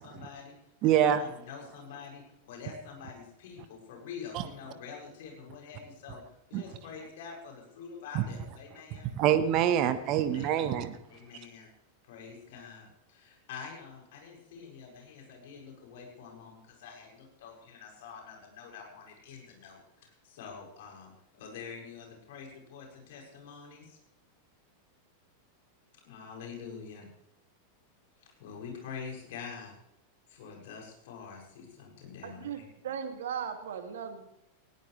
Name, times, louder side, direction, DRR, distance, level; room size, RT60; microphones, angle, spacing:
voice 1, 0.0-0.5 0.8-6.2 6.5-9.1 10.1-10.5 11.1-11.7 12.0-24.0 26.0-27.1 28.4-29.7 30.3-32.4, left 6 dB, 60° left, 0 dB, 7.3 m, -46 dB
voice 2, 0.8-1.2 4.3-4.4 6.5-6.6 8.1-8.2 9.2-11.0, right 10 dB, 45° right, 11 dB, 1.4 m, -25 dB
voice 3, 32.2-34.3, right 7 dB, 70° right, 6 dB, 2.5 m, -37 dB
20.0 x 18.0 x 3.4 m, 0.83 s
figure-of-eight pair, 95°, 0 cm